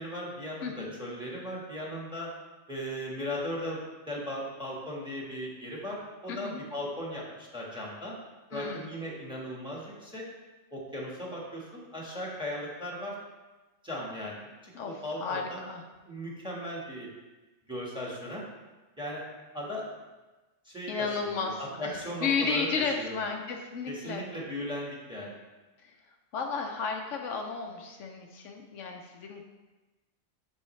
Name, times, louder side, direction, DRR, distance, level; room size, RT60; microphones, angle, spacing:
voice 1, 0.0-2.3 2.7-8.1 8.5-10.2 10.7-13.2 13.8-15.6 16.1-17.1 17.7-18.4 19.0-19.2 19.5-19.9 20.6-23.2 23.9-25.4, equal, 5° right, -3 dB, 1.4 m, -37 dB
voice 2, 0.6-0.9 6.3-6.6 8.5-8.9 14.7-15.8 20.9-24.2 25.8-25.9 26.3-29.4, left 5 dB, 75° left, 2 dB, 1.0 m, -33 dB
11.0 x 4.0 x 3.2 m, 1.2 s
omnidirectional pair, 1.3 m